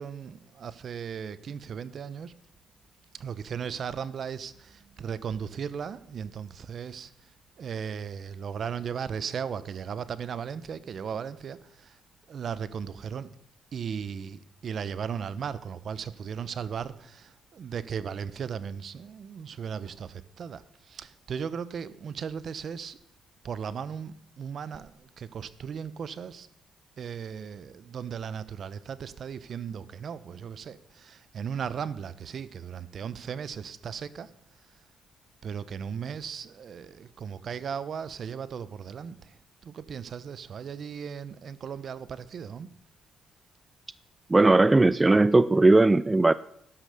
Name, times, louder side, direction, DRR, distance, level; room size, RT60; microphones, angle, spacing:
voice 1, 0.0-2.3 3.1-7.1 7.6-12.0 12.3-13.3 13.7-23.0 23.4-26.5 27.0-34.3 35.4-39.4 39.6-42.7, right 7 dB, 55° right, 0.8 m, -36 dB
voice 2, 44.3-46.3, right 2 dB, 20° right, 0.4 m, -18 dB
12.5 x 9.9 x 6.6 m
cardioid pair, 90°, 0 cm